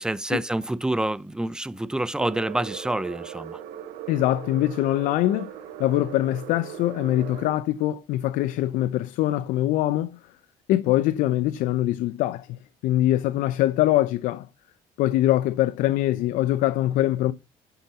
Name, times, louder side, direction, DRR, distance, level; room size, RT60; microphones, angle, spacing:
voice 1, 0.0-3.6, right 1 dB, 5° right, 0.5 m, -27 dB
sound 1, 2.2-7.5, right 10 dB, 80° right, 1.2 m, -39 dB
voice 2, 4.1-5.5 5.8-10.2 10.7-12.5 12.8-14.5 15.0-17.3, left 14 dB, 75° left, 0.6 m, -23 dB
9.7 x 4.1 x 5.6 m
cardioid pair, 95°, 14 cm